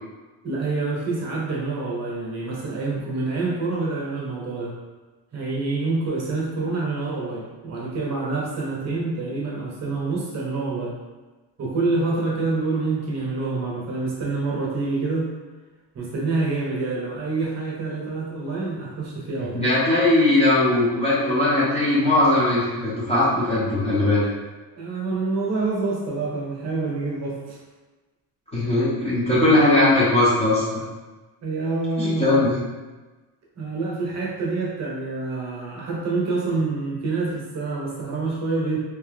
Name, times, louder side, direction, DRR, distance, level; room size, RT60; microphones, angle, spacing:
voice 1, 0.4-4.7 5.3-11.0 11.6-15.3 15.9-19.7 24.7-27.6 31.4-32.4 33.6-38.8, right 3 dB, 40° right, -3 dB, 0.7 m, -27 dB
voice 2, 19.5-24.3 28.5-30.8 32.0-32.6, left 2 dB, 15° left, -10 dB, 0.4 m, -19 dB
2.8 x 2.3 x 3.2 m, 1.2 s
cardioid pair, 170°, 42 cm